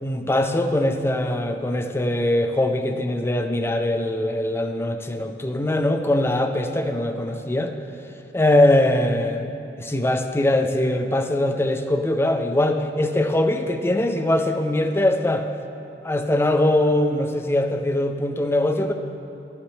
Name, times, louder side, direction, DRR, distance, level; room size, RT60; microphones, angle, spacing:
voice 1, 0.0-7.7 8.3-15.5 16.0-18.9, left 1 dB, 15° left, 5 dB, 0.4 m, -22 dB
11.5 x 8.8 x 3.2 m, 2.9 s
head